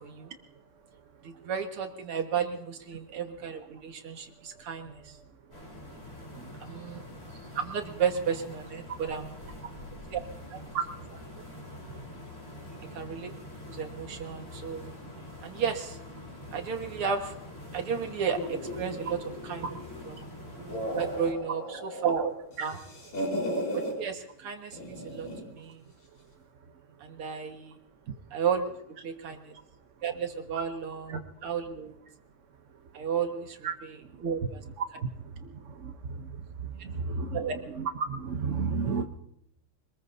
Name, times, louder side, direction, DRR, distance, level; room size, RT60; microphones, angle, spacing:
voice 1, 1.2-5.1 6.7-7.0 7.5-9.3 10.1-10.2 10.5-10.6 12.9-13.3 13.7-14.9 15.4-16.0 16.5-17.3 17.7-19.2 19.4-19.8 20.1-20.2 20.6-22.8 23.7-25.8 27.0-27.8 28.3-28.7 29.0-29.6 30.0-31.9 32.9-34.6 37.3-37.6, right 7 dB, 85° right, 4 dB, 2.5 m, -33 dB
sound 1, 5.5-21.3, left 1 dB, 25° left, 3.8 m, -45 dB
sound 2, 18.3-20.1 20.5-22.2 22.5-23.9 24.7-25.5, equal, 75° left, 6.2 m, -36 dB
voice 2, 36.8-37.5 37.8-39.0, right 5 dB, 55° right, 4 dB, 0.8 m, -31 dB
26.0 x 20.5 x 2.7 m, 0.75 s
omnidirectional pair, 2.3 m